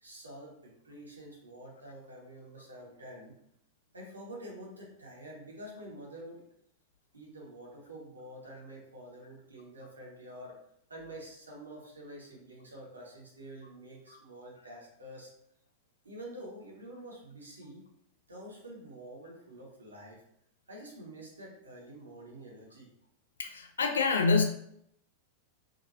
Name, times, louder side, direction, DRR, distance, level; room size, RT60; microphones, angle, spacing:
voice 1, 0.0-3.4 3.9-6.4 7.1-10.6 10.9-15.3 16.0-17.9 18.3-20.2 20.7-22.9, right 1 dB, 75° right, -2 dB, 0.8 m, -47 dB
voice 2, 23.4-24.4, left 4 dB, 70° left, 4 dB, 0.4 m, -26 dB
2.8 x 2.5 x 2.6 m, 0.72 s
figure-of-eight pair, 90°, 0 cm